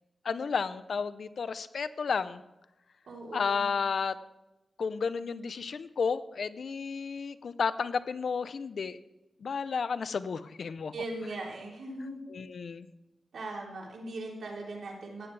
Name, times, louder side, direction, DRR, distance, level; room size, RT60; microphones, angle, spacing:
voice 1, 0.2-2.4 3.3-4.2 4.8-9.0 9.4-10.9 12.3-12.9, left 5 dB, 70° left, 13 dB, 0.6 m, -32 dB
voice 2, 3.1-3.6 10.9-12.2 13.3-15.3, right 2 dB, 85° right, -3 dB, 3.6 m, -39 dB
15.5 x 10.5 x 3.4 m, 0.97 s
wide cardioid pair, 85°, 0 cm